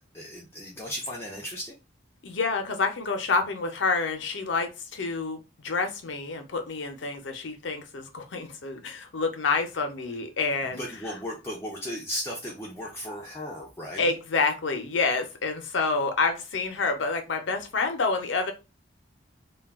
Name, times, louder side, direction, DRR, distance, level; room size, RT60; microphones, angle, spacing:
voice 1, 0.0-1.8 10.7-14.1, equal, 15° left, -3 dB, 0.4 m, -36 dB
voice 2, 2.2-10.8 14.0-18.5, left 4 dB, 75° left, 6 dB, 0.6 m, -28 dB
2.3 x 2.2 x 3.4 m, 0.29 s
head